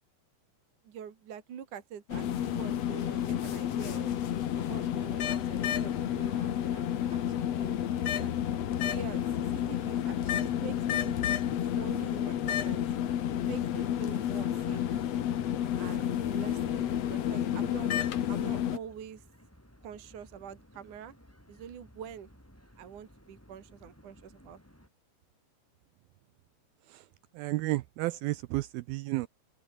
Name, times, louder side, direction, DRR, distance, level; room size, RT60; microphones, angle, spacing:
voice 1, 0.9-4.1 4.5-8.3 8.8-11.2 11.8-12.9 13.5-15.1 15.8-17.9 18.3-19.2 19.8-21.1 21.5-22.3 22.8-24.6, right 8 dB, 55° right, 3.5 m, -45 dB
sound 1, 2.1-18.8, left 10 dB, 60° left, 1.8 m, -30 dB
sound 2, 13.3-24.9, equal, 5° left, 7.2 m, -58 dB
voice 2, 27.3-29.3, right 19 dB, 80° right, 2.3 m, -32 dB
open air
omnidirectional pair, 4.6 m